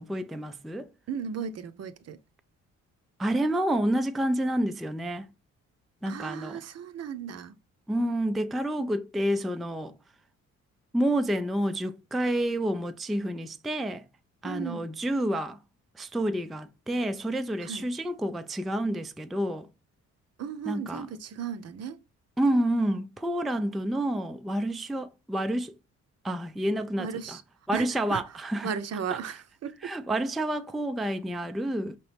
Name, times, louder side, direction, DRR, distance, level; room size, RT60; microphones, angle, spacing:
voice 1, 0.0-0.9 3.2-5.3 6.0-6.6 7.9-9.9 10.9-14.0 14.4-15.6 16.0-19.7 20.7-21.1 22.4-25.7 26.2-27.4 27.7-28.7 29.8-32.0, right 1 dB, ahead, 0.3 m, -29 dB
voice 2, 1.1-2.2 6.1-7.5 14.4-14.9 17.6-17.9 20.4-22.0 26.7-27.4 27.7-28.2 28.6-29.9, right 7 dB, 55° right, 0.7 m, -36 dB
5.1 x 2.9 x 3.3 m
cardioid pair, 90°, 30 cm